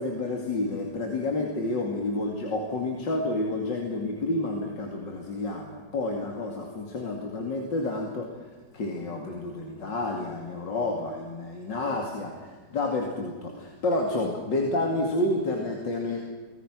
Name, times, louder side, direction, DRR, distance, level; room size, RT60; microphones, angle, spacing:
voice 1, 0.0-8.3 8.7-16.2, left 2 dB, 80° left, 1 dB, 3.1 m, -29 dB
24.0 x 19.5 x 6.2 m, 1.4 s
omnidirectional pair, 2.0 m